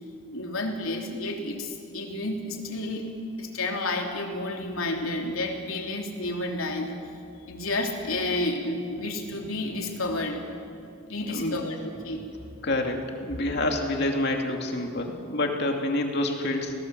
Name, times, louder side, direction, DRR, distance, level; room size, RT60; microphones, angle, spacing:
voice 1, 0.3-3.1 3.4-6.9 7.5-10.4 11.1-12.3, left 2 dB, 75° left, 2 dB, 3.3 m, -31 dB
voice 2, 11.2-11.6 12.6-16.7, left 1 dB, 50° left, 3 dB, 2.6 m, -27 dB
29.0 x 19.0 x 7.6 m, 2.5 s
head